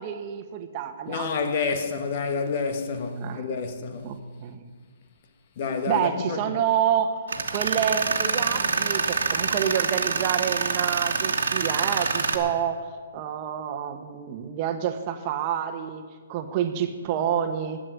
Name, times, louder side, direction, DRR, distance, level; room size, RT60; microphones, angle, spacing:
voice 1, 0.0-1.3 3.2-3.4 4.0-4.6 5.9-7.1 7.5-12.8 13.1-16.0 16.3-17.8, right 9 dB, 35° right, 1.3 m, -28 dB
voice 2, 1.1-4.2 5.6-6.4, left 5 dB, 45° left, 1.6 m, -29 dB
Tools, 7.3-12.4, right 5 dB, 75° right, 1.5 m, -26 dB
12.0 x 7.8 x 10.0 m
hypercardioid pair, 140°, 0 cm